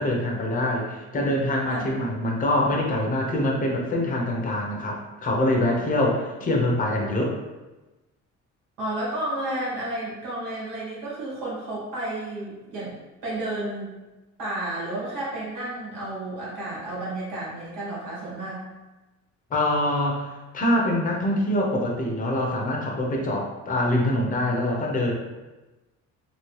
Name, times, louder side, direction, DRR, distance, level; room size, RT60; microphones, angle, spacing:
voice 1, 0.0-7.4 19.5-20.3 20.5-25.1, left 1 dB, 25° left, -1 dB, 0.6 m, -24 dB
voice 2, 1.7-2.0 5.7-5.9 8.8-12.9 13.2-13.9 14.4-18.7, right 1 dB, 90° right, -6 dB, 1.4 m, -32 dB
2.9 x 2.8 x 3.1 m, 1.1 s
cardioid pair, 120°, 31 cm